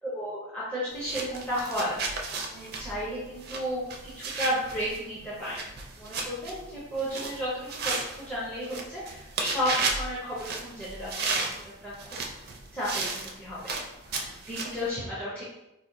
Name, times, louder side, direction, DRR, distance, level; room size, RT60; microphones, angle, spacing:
voice 1, 0.0-2.0 2.5-5.7 6.0-11.6 11.8-13.8 14.0-15.4, equal, 5° left, -9 dB, 0.6 m, -33 dB
sound 1, 0.9-14.9, right 4 dB, 50° right, 0.4 m, -34 dB
4.1 x 2.1 x 2.6 m, 0.90 s
head